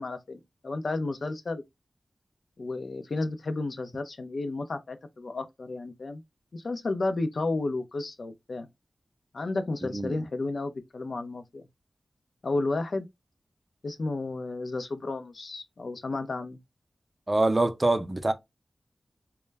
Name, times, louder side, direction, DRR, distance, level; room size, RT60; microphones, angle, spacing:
voice 1, 0.0-1.6 2.6-6.2 6.5-8.7 9.3-11.6 12.4-13.1 13.8-16.6, left 2 dB, 70° left, 0.4 m, -32 dB
voice 2, 9.8-10.2 17.3-18.3, right 2 dB, 30° right, 0.4 m, -25 dB
2.2 x 2.0 x 3.2 m
wide cardioid pair, 60°, 0 cm